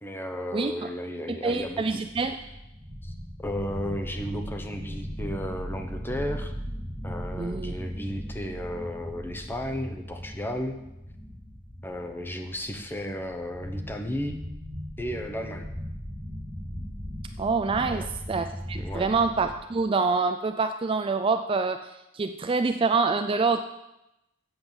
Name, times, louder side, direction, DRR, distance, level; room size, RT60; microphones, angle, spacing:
voice 1, 0.0-1.8 3.0-3.1 3.4-6.5 7.0-10.8 11.8-14.3 15.0-15.7 17.8-18.1 18.4-18.5 18.7-19.1, equal, 10° left, 4 dB, 0.9 m, -34 dB
voice 2, 0.5-0.9 1.3-2.4 7.4-7.7 17.4-23.6, right 4 dB, 25° right, 7 dB, 0.4 m, -26 dB
sound 1, 1.8-19.5, equal, 30° left, 4.1 m, -38 dB
7.9 x 7.8 x 7.1 m, 0.90 s
head